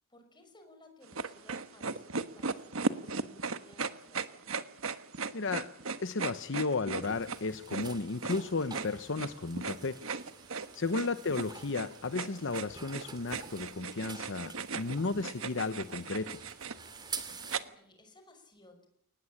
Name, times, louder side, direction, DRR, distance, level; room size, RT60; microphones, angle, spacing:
voice 1, 0.1-4.5 10.6-11.1 17.2-18.9, left 1 dB, 20° left, 6 dB, 5.8 m, -59 dB
sound 1, 1.1-17.6, right 4 dB, 80° right, 1.3 m, -37 dB
voice 2, 5.3-5.7 6.0-10.0 10.7-16.4, left 3 dB, 60° left, 11 dB, 0.9 m, -34 dB
sound 2, 7.0-17.6, right 4 dB, 20° right, 2.6 m, -48 dB
23.0 x 19.5 x 8.7 m, 0.69 s
head